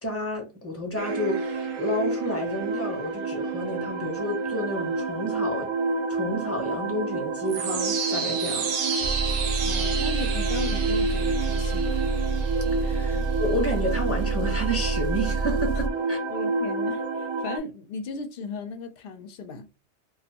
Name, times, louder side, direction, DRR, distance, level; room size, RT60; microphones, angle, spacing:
voice 1, 0.0-5.7 6.1-8.7 12.8-16.2, equal, 15° left, 0.7 m, -30 dB
sound 1, 1.0-17.6, right 4 dB, 85° right, 0.9 m, -29 dB
Engine, 9.0-15.9, right 4 dB, 60° right, 0.6 m, -28 dB
voice 2, 9.7-12.0 13.1-13.3 16.3-19.7, left 4 dB, 65° left, 0.7 m, -36 dB
2.5 x 2.3 x 2.7 m
omnidirectional pair, 1.2 m